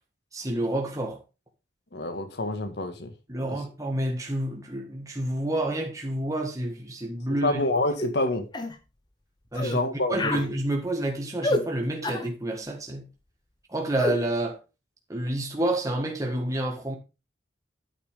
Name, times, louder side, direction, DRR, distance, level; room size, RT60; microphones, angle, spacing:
voice 1, 0.3-1.2 3.3-7.6 9.5-9.8 10.1-13.1 13.7-14.6 15.1-17.0, right 1 dB, 20° right, 1.7 m, -29 dB
voice 2, 1.9-3.1 3.5-3.6 7.4-8.5 9.6-10.4, left 2 dB, 70° left, 1.8 m, -27 dB
sound 1, 8.0-8.2 8.5-8.8 9.5-9.8 10.1-10.5 11.4-11.7 12.0-12.3 14.0-14.2, left 2 dB, 25° left, 1.2 m, -28 dB
9.7 x 8.4 x 3.6 m
head